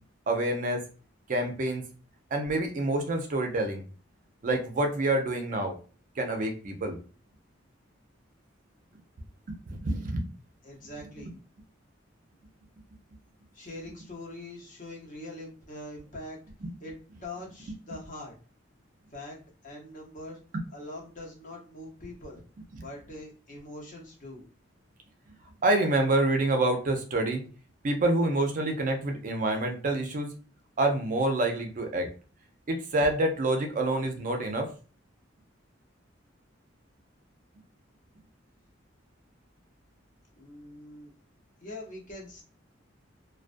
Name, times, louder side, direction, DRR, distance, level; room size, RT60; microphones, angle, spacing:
voice 1, 0.3-0.8 1.3-1.8 2.3-3.8 4.4-5.8 6.2-7.0 9.5-10.3 16.6-16.7 25.6-27.4 27.8-30.3 30.8-32.1 32.7-34.7, right 2 dB, 40° right, 4 dB, 0.4 m, -27 dB
voice 2, 10.6-11.3 13.5-16.4 16.8-16.9 17.2-18.3 19.1-19.4 19.6-20.4 20.7-22.4 22.8-24.4 40.4-41.1 41.6-42.4, left 1 dB, 40° left, -2 dB, 0.9 m, -43 dB
2.3 x 2.2 x 2.5 m, 0.37 s
head